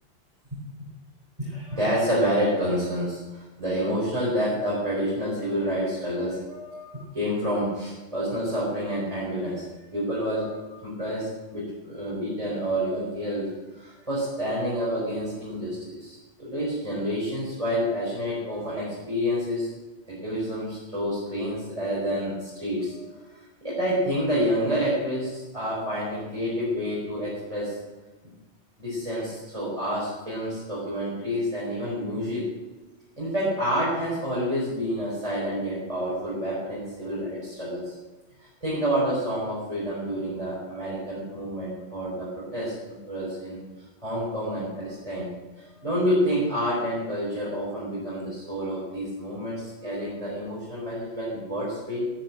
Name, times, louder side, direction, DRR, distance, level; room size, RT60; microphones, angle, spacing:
voice 1, 1.4-9.7 9.9-19.7 20.1-27.7 28.8-32.5 33.2-37.9 38.4-43.6 44.0-52.1, equal, 30° right, -8 dB, 4.8 m, -28 dB
11.5 x 10.5 x 7.4 m, 1.1 s
omnidirectional pair, 1.1 m